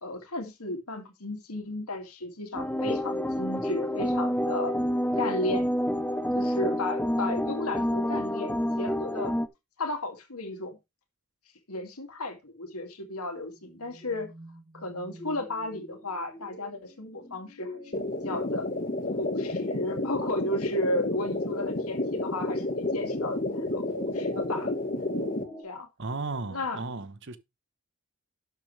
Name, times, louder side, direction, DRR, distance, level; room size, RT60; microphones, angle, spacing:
voice 1, 0.0-4.8 5.2-5.7 6.3-9.3 9.8-10.8 11.7-14.3 14.7-17.8 18.2-18.7 19.2-25.1 25.6-25.9 26.5-26.8, left 2 dB, 85° left, 2.4 m, -34 dB
sound 1, 2.5-9.5, equal, 5° left, 0.6 m, -28 dB
sound 2, 13.4-25.6, equal, 20° left, 5.5 m, -44 dB
sound 3, 17.9-25.4, left 2 dB, 40° left, 1.5 m, -31 dB
voice 2, 26.0-27.4, right 3 dB, 55° right, 1.0 m, -35 dB
12.0 x 7.0 x 3.3 m
head